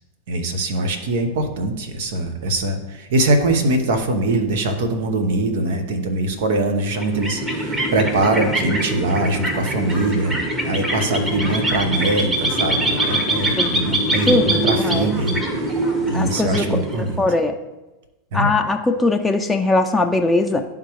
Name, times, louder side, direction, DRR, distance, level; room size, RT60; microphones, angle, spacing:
voice 1, 0.3-17.2 18.3-18.5, right 2 dB, 70° right, 7 dB, 1.0 m, -22 dB
sound 1, 6.9-17.3, right 1 dB, 15° right, 1.2 m, -23 dB
voice 2, 14.3-15.1 16.1-17.5 18.3-20.6, left 2 dB, 5° left, 2 dB, 0.4 m, -20 dB
11.0 x 3.7 x 3.1 m, 1.0 s
hypercardioid pair, 105°, 0 cm